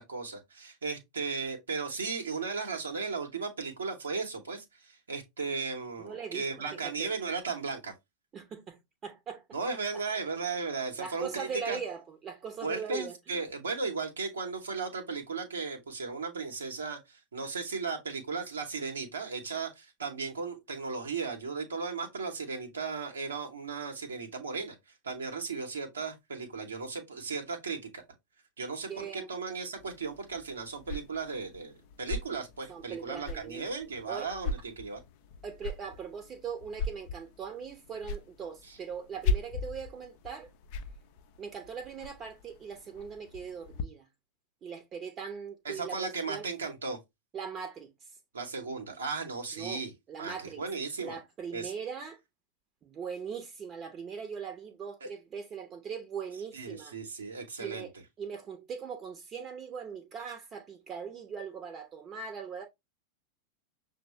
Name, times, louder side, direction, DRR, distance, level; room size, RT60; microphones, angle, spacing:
voice 1, 0.0-7.9 9.5-11.8 12.6-24.8 25.0-28.0 28.6-35.0 38.7-38.8 45.6-47.0 48.3-49.9 50.2-51.2 51.5-51.7 55.0-55.1 56.5-57.9, right 4 dB, 70° right, 0.8 m, -36 dB
voice 2, 6.0-7.2 8.3-9.4 11.0-13.2 28.9-29.3 32.7-33.7 34.0-34.3 35.4-40.5 41.4-44.1 44.6-46.5 47.3-47.9 49.5-50.6 51.0-52.2 52.8-57.0 57.6-57.9 58.2-62.7, right 6 dB, 25° right, 0.7 m, -40 dB
sound 1, 29.8-43.8, left 3 dB, 45° left, 0.5 m, -39 dB
5.9 x 2.1 x 3.0 m
figure-of-eight pair, 90°, 0 cm